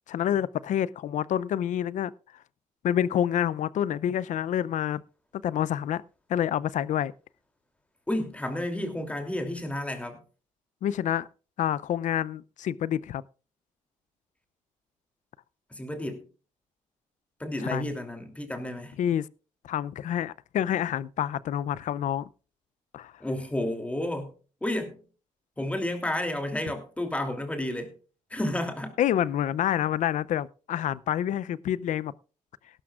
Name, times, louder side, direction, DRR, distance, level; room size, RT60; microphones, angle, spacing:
voice 1, 0.1-2.1 2.8-5.0 5.4-6.0 6.3-7.1 10.8-11.3 11.6-13.2 17.6-18.0 19.0-19.3 19.6-22.3 22.9-23.1 29.0-32.1, left 10 dB, 65° left, 0.5 m, -27 dB
voice 2, 8.1-10.2 15.7-16.3 17.4-19.0 23.2-24.3 24.6-25.0 25.6-27.9 28.3-29.0, left 1 dB, 10° left, 2.9 m, -31 dB
17.5 x 12.5 x 2.4 m
cardioid pair, 110°, 14 cm